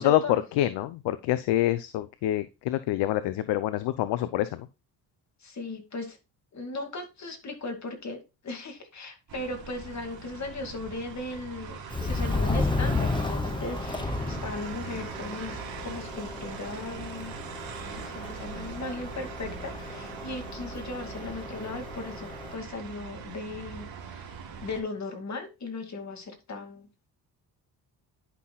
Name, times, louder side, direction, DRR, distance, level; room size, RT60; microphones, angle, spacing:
voice 1, 0.0-0.4 5.4-6.2 6.5-17.3 17.9-26.9, left 3 dB, 40° left, 2.4 m, -37 dB
voice 2, 0.6-4.7, left 14 dB, 80° left, 0.7 m, -26 dB
sound 1, 9.3-24.8, right 5 dB, 60° right, 2.4 m, -41 dB
Subway metro underground, 11.9-22.5, left 3 dB, 10° left, 0.8 m, -33 dB
10.5 x 5.8 x 2.3 m
cardioid pair, 80°, 41 cm